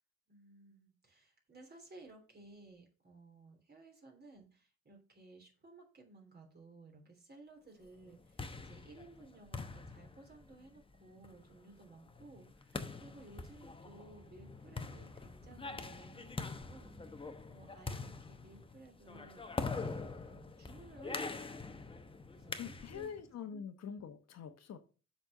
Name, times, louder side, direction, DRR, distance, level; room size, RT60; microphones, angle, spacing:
voice 1, 0.3-21.9 22.3-23.1 23.4-23.5, right 3 dB, 35° right, 2 dB, 3.3 m, -58 dB
sound 1, 8.0-23.2, left 3 dB, 20° left, 0.8 m, -44 dB
voice 2, 22.6-24.8, left 7 dB, 60° left, 8 dB, 1.1 m, -45 dB
7.3 x 4.4 x 6.4 m, 0.37 s
cardioid pair, 90°, 30 cm